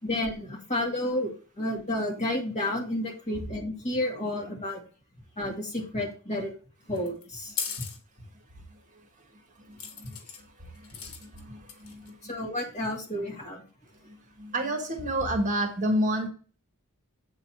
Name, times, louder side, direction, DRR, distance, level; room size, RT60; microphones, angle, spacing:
voice 1, 0.0-4.8 5.4-6.5 6.9-7.5 12.2-13.6, left 1 dB, 30° left, -1 dB, 2.3 m, -31 dB
sound 1, 7.0-8.0 9.8-10.4 10.8-11.4 11.7-12.1, left 7 dB, 75° left, 1.6 m, -36 dB
voice 2, 9.7-10.2 11.2-12.1 14.4-16.3, right 1 dB, 35° right, 3 dB, 1.4 m, -29 dB
8.2 x 4.0 x 6.0 m, 0.39 s
head